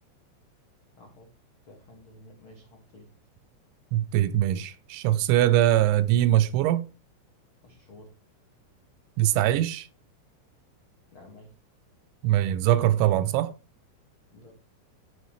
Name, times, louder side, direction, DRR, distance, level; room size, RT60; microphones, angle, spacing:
voice 1, 1.0-1.3 1.6-3.1 7.6-8.2 11.1-11.5 14.3-14.6, left 1 dB, 90° left, 1.1 m, -51 dB
voice 2, 3.9-6.9 9.2-9.9 12.2-13.5, right 13 dB, 80° right, 2.9 m, -22 dB
9.5 x 9.4 x 3.1 m
omnidirectional pair, 5.6 m